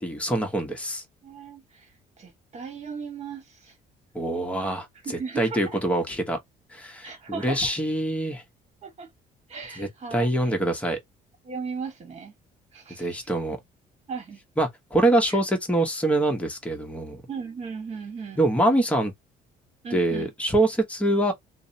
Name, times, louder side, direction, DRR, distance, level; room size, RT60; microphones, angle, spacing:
voice 1, 0.0-1.0 4.1-4.9 5.4-6.4 6.7-8.4 9.8-11.0 13.0-13.6 14.6-17.2 18.4-19.1 19.9-21.3, right 1 dB, 5° left, 0.8 m, -24 dB
voice 2, 1.2-3.7 5.0-5.8 7.0-7.7 8.8-9.1 9.5-10.6 11.4-12.3 12.7-13.2 14.1-14.4 15.3-15.4 17.3-18.5 19.8-20.3, right 5 dB, 40° right, 1.2 m, -37 dB
2.7 x 2.0 x 2.7 m
cardioid pair, 110°, 17 cm